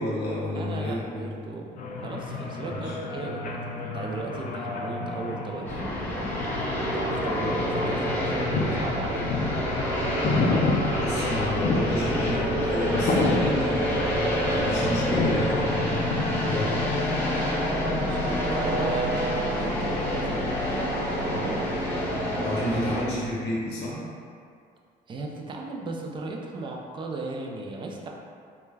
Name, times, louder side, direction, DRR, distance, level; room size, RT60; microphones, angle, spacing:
voice 1, 0.0-1.2 2.7-2.9 10.9-14.0 14.4-16.9 22.4-24.0, left 1 dB, 90° left, -6 dB, 0.8 m, -30 dB
voice 2, 0.5-3.6 3.9-6.0 6.8-9.3 17.8-20.6 21.1-21.6 25.1-28.1, right 3 dB, 30° right, 0 dB, 0.3 m, -36 dB
sound 1, 1.8-16.9, left 3 dB, 50° left, 0.4 m, -30 dB
sound 2, 5.6-23.0, equal, 10° left, 0.7 m, -27 dB
2.2 x 2.1 x 3.2 m, 2.2 s
cardioid pair, 110°, 17 cm